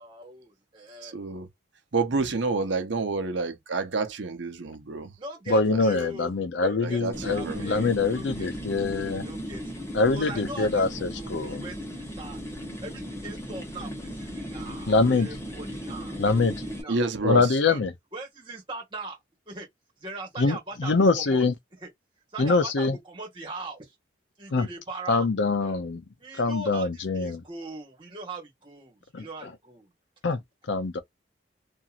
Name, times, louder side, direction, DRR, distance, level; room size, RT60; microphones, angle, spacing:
voice 1, 0.0-1.1 5.2-6.3 6.6-12.4 12.8-17.0 17.7-17.8 18.1-19.2 19.5-19.7 20.0-21.5 21.8-21.9 22.3-23.9 24.4-25.3 25.6-25.8 26.2-29.9, right 2 dB, 25° right, 1.4 m, -41 dB
voice 2, 1.0-1.5 1.9-5.1 6.8-7.7 16.9-17.5, right 3 dB, 75° right, 0.8 m, -28 dB
voice 3, 5.5-9.2 9.9-11.6 14.9-15.3 16.2-16.6 17.2-17.9 20.4-21.5 22.4-23.0 24.5-24.7 25.1-26.0 26.4-27.4 29.1-29.3 30.2-30.4 30.7-31.0, left 3 dB, 75° left, 0.6 m, -24 dB
sound 1, 7.1-16.8, equal, 15° left, 0.8 m, -36 dB
2.8 x 2.5 x 2.4 m
head